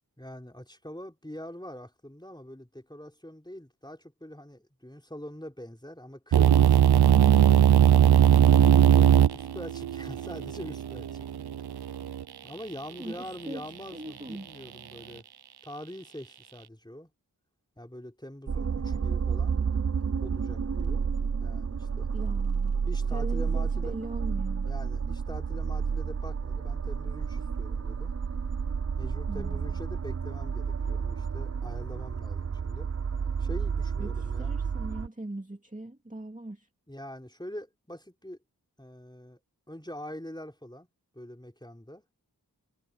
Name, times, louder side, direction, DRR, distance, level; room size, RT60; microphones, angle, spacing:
voice 1, 0.2-7.1 8.7-11.4 12.4-15.2 15.6-17.1 17.8-19.5 20.2-21.0 21.4-22.1 22.9-24.0 24.7-28.2 29.0-32.9 33.4-34.5 36.9-38.4 38.8-39.4 39.7-40.9 41.1-42.0, equal, 10° left, 4.3 m, -44 dB
sound 1, 6.3-12.2, right 10 dB, 90° right, 0.5 m, -20 dB
voice 2, 12.9-14.5 22.1-22.7 23.1-24.7 29.3-29.8 34.0-36.7, right 1 dB, 20° right, 2.6 m, -40 dB
sound 2, 18.5-35.1, right 6 dB, 40° right, 0.6 m, -30 dB
wide cardioid pair, 55°, 38 cm